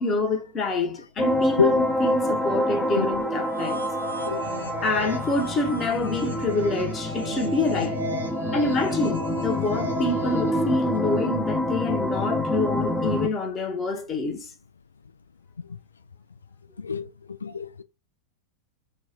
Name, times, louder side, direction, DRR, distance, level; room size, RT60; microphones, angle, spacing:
voice 1, 0.0-3.8 4.8-8.0 8.5-14.5, left 2 dB, 25° left, 1.1 m, -27 dB
sound 1, 1.2-13.3, left 1 dB, 5° left, 0.6 m, -27 dB
sound 2, 3.3-10.7, right 2 dB, 80° right, 1.2 m, -36 dB
voice 2, 17.4-17.8, left 6 dB, 75° left, 0.3 m, -25 dB
4.3 x 2.4 x 4.4 m
figure-of-eight pair, 90°, 0 cm